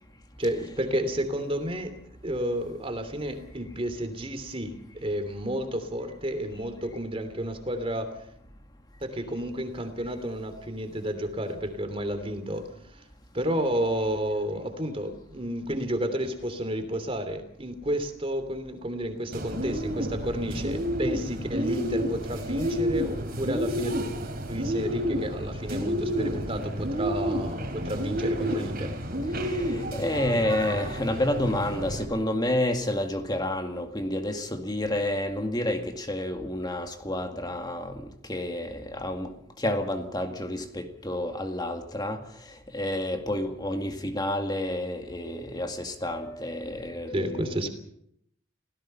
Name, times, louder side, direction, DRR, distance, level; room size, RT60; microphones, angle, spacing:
voice 1, 0.4-2.0 2.2-8.2 9.0-13.0 13.3-24.0 24.5-28.9 47.1-47.7, equal, 25° right, 8 dB, 3.0 m, -31 dB
Bird, 19.3-32.1, equal, 45° right, 3.5 m, -30 dB
voice 2, 29.3-47.7, left 1 dB, 20° left, 5 dB, 2.1 m, -30 dB
27.5 x 17.5 x 5.7 m, 0.73 s
head